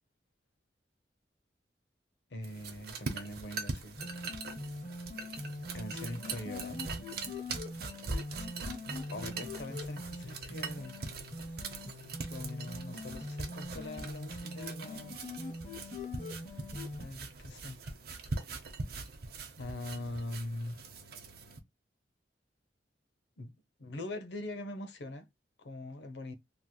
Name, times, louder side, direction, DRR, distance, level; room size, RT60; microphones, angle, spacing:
voice 1, 2.3-4.0 5.7-6.8 9.1-11.0 12.3-15.2 17.0-17.8 19.6-20.8 23.4-23.5 23.8-25.3 25.6-26.3, left 1 dB, 80° left, 0.7 m, -42 dB
sound 1, 2.4-21.6, right 3 dB, 60° right, 0.7 m, -42 dB
sound 2, 4.0-17.1, left 2 dB, 45° left, 0.9 m, -43 dB
3.0 x 2.9 x 2.2 m
head